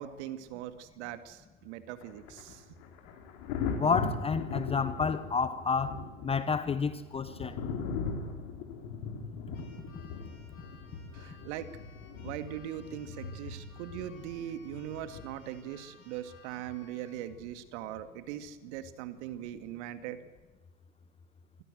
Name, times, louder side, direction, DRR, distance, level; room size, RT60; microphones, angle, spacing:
voice 1, 0.0-2.7 11.1-11.7 12.2-20.2, right 11 dB, 55° right, 2.3 m, -40 dB
Thunder, 2.0-15.7 17.3-17.5, left 5 dB, 50° left, 4.0 m, -39 dB
voice 2, 3.8-7.6, left 5 dB, 15° left, 0.8 m, -30 dB
Keyboard (musical), 9.5-17.3, left 4 dB, 75° left, 7.0 m, -59 dB
26.0 x 16.0 x 7.9 m
hypercardioid pair, 105°, 42 cm